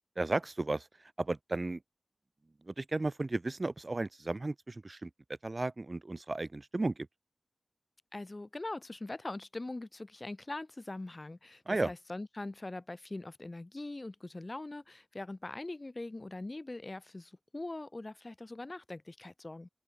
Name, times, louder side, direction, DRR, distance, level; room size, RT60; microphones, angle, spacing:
voice 1, 0.2-0.9 1.2-1.8 2.7-5.1 5.4-6.9 11.7-11.9, right 2 dB, 45° right, 1.6 m, -34 dB
voice 2, 8.1-19.7, left 2 dB, 40° left, 4.7 m, -42 dB
open air
cardioid pair, 45°, 0 cm